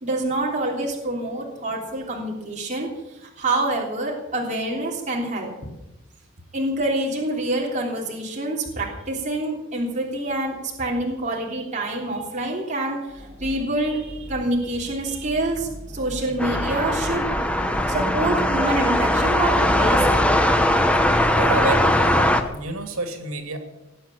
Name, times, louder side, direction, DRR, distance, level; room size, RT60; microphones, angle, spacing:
voice 1, 0.0-5.5 6.5-17.3 17.9-20.2, right 2 dB, 35° right, -2 dB, 3.2 m, -26 dB
sound 1, 13.1-20.2, left 1 dB, 55° right, 7.1 m, -40 dB
sound 2, 16.4-22.4, left 1 dB, 5° left, 1.0 m, -20 dB
voice 2, 21.3-23.6, right 2 dB, 80° right, 5 dB, 2.7 m, -28 dB
19.5 x 8.5 x 8.5 m, 0.96 s
head